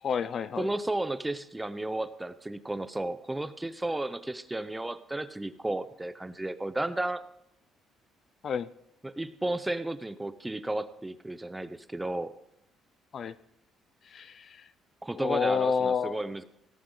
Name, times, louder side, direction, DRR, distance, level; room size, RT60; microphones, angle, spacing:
voice 1, 0.0-0.7 8.4-8.7 13.1-13.3 14.1-14.7 15.1-16.2, left 6 dB, 45° left, 16 dB, 0.5 m, -29 dB
voice 2, 0.6-7.2 9.0-12.3 15.0-16.4, right 2 dB, 10° right, 13 dB, 0.7 m, -33 dB
17.5 x 13.0 x 3.9 m, 0.79 s
cardioid pair, 135°, 0 cm